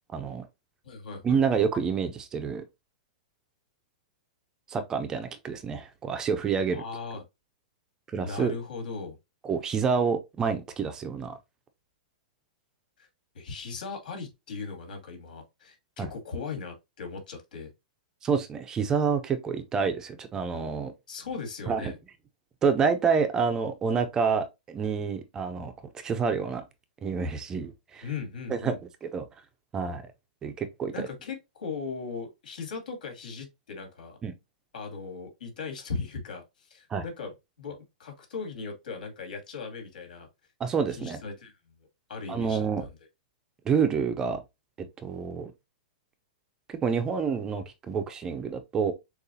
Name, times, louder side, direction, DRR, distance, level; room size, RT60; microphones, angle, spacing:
voice 1, 0.1-0.5 1.2-2.6 4.7-6.8 8.1-8.5 9.4-11.4 16.0-16.1 18.2-20.9 21.7-21.9 22.6-26.6 27.0-28.1 28.5-28.7 29.0-29.2 29.7-30.0 30.4-31.1 34.2-34.3 36.9-37.0 40.6-41.2 42.3-42.8 43.6-44.4 45.0-45.5 46.7-48.9, right 6 dB, 15° right, 0.4 m, -28 dB
voice 2, 0.8-1.6 6.7-7.2 8.2-9.2 13.0-13.1 13.3-17.7 21.1-22.0 28.0-28.8 30.9-34.2 34.7-37.3 37.6-40.3 40.9-41.5 42.1-42.9, left 4 dB, 90° left, 2.3 m, -38 dB
6.6 x 2.4 x 2.7 m
supercardioid pair, 165°, 4 cm